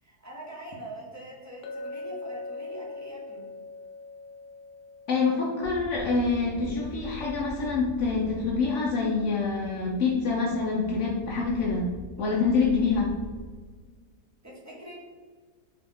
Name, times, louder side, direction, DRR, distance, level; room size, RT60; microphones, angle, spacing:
voice 1, 0.0-3.5 14.4-14.9, right 1 dB, 15° right, -5 dB, 0.5 m, -43 dB
Chink clink, 1.6-5.8, left 2 dB, 65° left, 1.0 m, -41 dB
voice 2, 5.1-11.9 12.2-13.1, left 4 dB, 85° left, -2 dB, 0.6 m, -26 dB
sound 1, 5.6-13.5, left 1 dB, 65° right, 1.1 m, -43 dB
3.8 x 3.0 x 3.4 m, 1.5 s
omnidirectional pair, 1.8 m